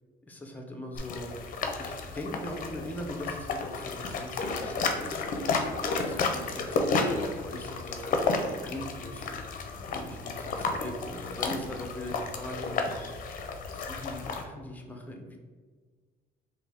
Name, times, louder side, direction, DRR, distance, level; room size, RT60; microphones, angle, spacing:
voice 1, 0.2-1.3 1.8-5.3 6.0-8.0 8.6-9.4 9.7-13.0 13.7-15.4, left 1 dB, 10° left, 2 dB, 0.6 m, -41 dB
sound 1, 0.9-14.4, left 4 dB, 55° left, 0.5 m, -32 dB
3.6 x 2.6 x 3.4 m, 1.5 s
cardioid pair, 110°, 17 cm